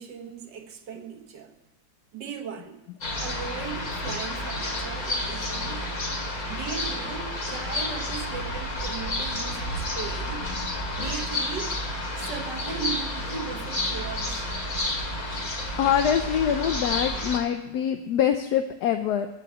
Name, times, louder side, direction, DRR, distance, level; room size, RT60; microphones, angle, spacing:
voice 1, 0.0-1.6 2.1-2.8 3.2-5.9 6.5-10.5 11.0-11.8 12.2-14.4, right 6 dB, 70° right, 1.8 m, -37 dB
sound 1, 3.0-17.4, left 1 dB, 50° left, 2.7 m, -30 dB
voice 2, 15.8-19.3, left 9 dB, 70° left, 1.1 m, -24 dB
14.5 x 5.8 x 8.0 m
omnidirectional pair, 2.0 m